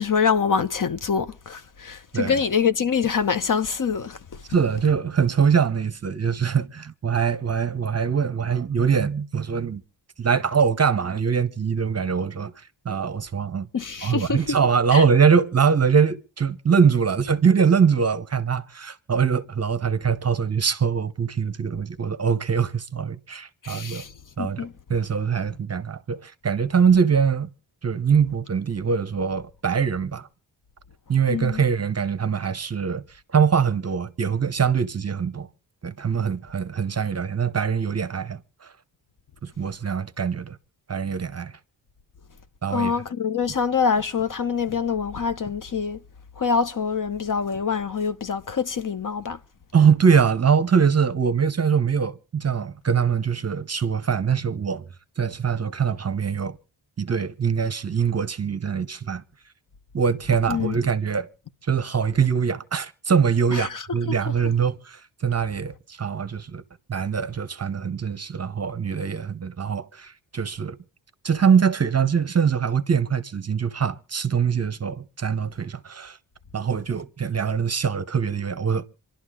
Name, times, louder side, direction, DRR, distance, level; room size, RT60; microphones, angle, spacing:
voice 1, 0.0-4.2 13.7-14.4 14.9-15.0 23.6-24.1 24.4-24.7 31.3-31.6 42.7-46.0 46.4-49.4 60.5-60.8 63.5-63.8, left 6 dB, 45° left, 0.9 m, -25 dB
voice 2, 4.5-9.8 10.2-12.5 12.8-13.7 14.0-24.0 24.4-27.5 27.8-30.3 31.1-33.0 33.3-35.5 35.8-38.7 39.4-40.6 40.9-41.5 42.6-42.9 49.7-54.8 55.2-56.6 57.0-59.2 59.9-61.3 61.6-66.6 66.9-70.8 71.2-76.2 76.5-78.9, right 6 dB, 35° right, 0.8 m, -23 dB
27.5 x 11.5 x 3.7 m
wide cardioid pair, 135°, 45 cm